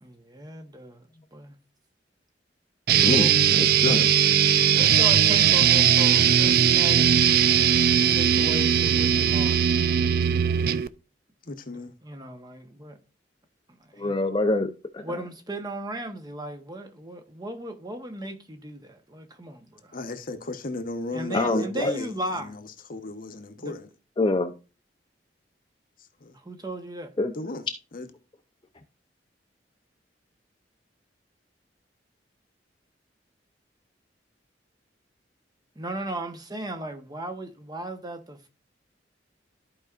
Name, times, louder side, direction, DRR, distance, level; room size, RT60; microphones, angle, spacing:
voice 1, 0.0-1.5 3.1-3.3 4.7-7.1 8.0-9.6 11.7-11.8 12.0-13.0 13.8-14.2 15.0-19.9 21.1-22.6 23.6-23.7 26.3-27.1 35.8-38.5, right 1 dB, 25° right, 1.1 m, -36 dB
sound 1, 2.9-10.9, right 8 dB, 55° right, 0.4 m, -19 dB
voice 2, 3.0-4.1 14.0-15.2 21.3-21.9 24.2-24.5 27.2-27.3, left 2 dB, 25° left, 0.6 m, -25 dB
voice 3, 11.4-12.0 19.9-23.9 26.0-26.4 27.3-27.6 27.9-28.1, left 2 dB, 50° left, 1.0 m, -35 dB
14.0 x 4.8 x 2.4 m
head